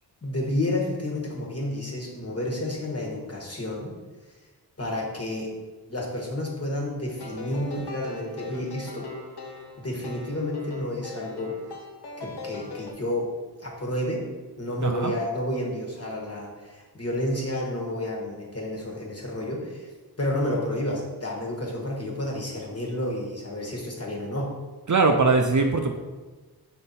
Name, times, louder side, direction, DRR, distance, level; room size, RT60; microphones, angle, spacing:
voice 1, 0.2-3.9 4.8-5.5 5.9-9.1 9.8-11.5 12.2-13.3 13.6-14.3 14.6-19.9 20.2-24.5, left 1 dB, 35° left, -2 dB, 1.4 m, -30 dB
sound 1, 7.2-12.9, left 3 dB, 70° left, 0.8 m, -40 dB
voice 2, 14.8-15.1 24.9-25.9, right 3 dB, 45° right, 4 dB, 0.6 m, -21 dB
5.5 x 4.0 x 4.2 m, 1.3 s
wide cardioid pair, 65°, 41 cm